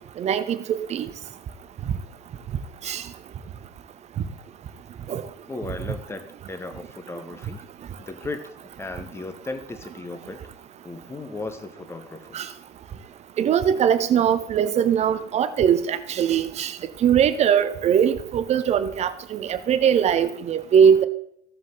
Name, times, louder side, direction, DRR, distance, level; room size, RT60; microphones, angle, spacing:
voice 1, 0.2-1.1 2.8-3.0 5.1-5.3 12.3-12.5 13.4-21.1, right 8 dB, 20° right, 0.6 m, -21 dB
voice 2, 5.5-7.6 8.0-8.4 8.8-10.4 10.8-12.4, left 3 dB, 5° left, 0.9 m, -36 dB
15.0 x 7.3 x 3.7 m
figure-of-eight pair, 90°, 35 cm